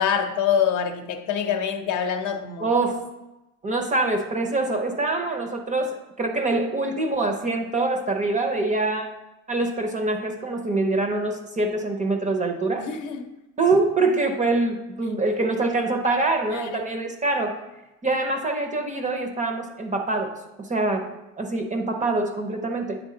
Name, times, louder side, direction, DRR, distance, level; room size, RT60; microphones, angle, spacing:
voice 1, 0.0-2.7 12.8-13.2 16.5-16.9, left 8 dB, 55° left, 6 dB, 0.7 m, -25 dB
voice 2, 2.6-3.1 3.6-9.1 9.5-12.9 13.6-17.6 18.0-21.1 21.4-23.0, right 2 dB, 20° right, 4 dB, 0.5 m, -24 dB
9.1 x 3.6 x 3.8 m, 0.98 s
cardioid pair, 155°, 36 cm